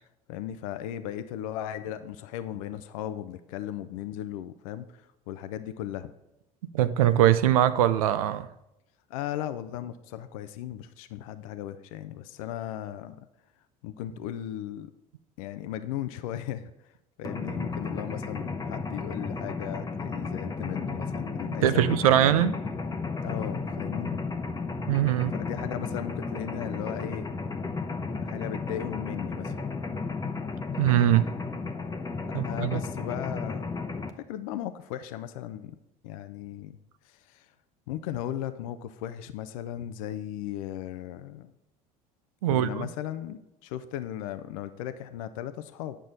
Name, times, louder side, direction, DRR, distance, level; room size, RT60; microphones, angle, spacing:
voice 1, 0.3-6.1 9.1-13.3 13.8-14.9 15.4-16.7 17.2-21.9 23.2-24.2 25.3-27.3 28.2-29.6 32.3-33.7 34.2-35.8 36.0-36.8 37.0-37.5 37.9-41.5 42.5-46.0, left 11 dB, 75° left, 0.5 m, -36 dB
voice 2, 6.7-8.5 21.6-22.6 24.9-25.4 30.8-31.3 32.3-32.8 42.4-42.9, right 11 dB, 85° right, 0.4 m, -22 dB
Mechanisms, 17.2-34.1, left 4 dB, 20° left, 0.8 m, -33 dB
9.0 x 6.2 x 4.0 m
hypercardioid pair, 70°, 18 cm